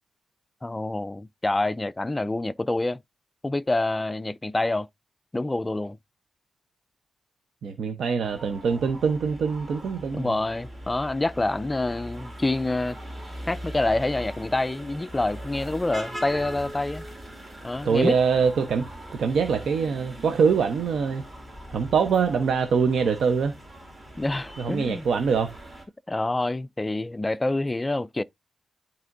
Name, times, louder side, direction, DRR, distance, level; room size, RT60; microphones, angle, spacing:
voice 1, 0.6-3.0 3.4-4.9 5.3-6.0 10.1-13.0 13.5-17.1 17.6-18.2 24.2-25.1 26.1-28.2, left 2 dB, 15° left, 0.3 m, -27 dB
voice 2, 7.6-10.3 17.8-21.2 21.7-23.5 24.6-25.6, right 6 dB, 80° right, 0.7 m, -24 dB
sound 1, 8.2-25.8, equal, 20° right, 2.2 m, -41 dB
12.5 x 4.2 x 2.6 m
wide cardioid pair, 145°, 0 cm